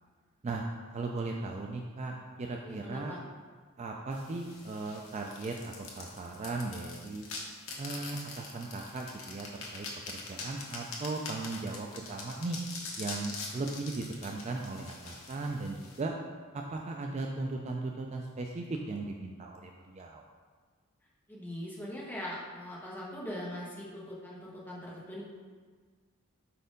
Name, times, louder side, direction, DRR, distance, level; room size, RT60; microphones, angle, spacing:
voice 1, 0.9-3.1 3.8-7.3 7.8-12.6 13.0-16.1 16.5-20.2, right 3 dB, 30° right, 1 dB, 0.3 m, -37 dB
voice 2, 2.6-3.2 21.3-25.2, left 1 dB, 10° left, -6 dB, 1.1 m, -41 dB
sound 1, 4.1-16.0, left 3 dB, 70° left, 1.1 m, -44 dB
4.6 x 4.3 x 5.1 m, 1.5 s
head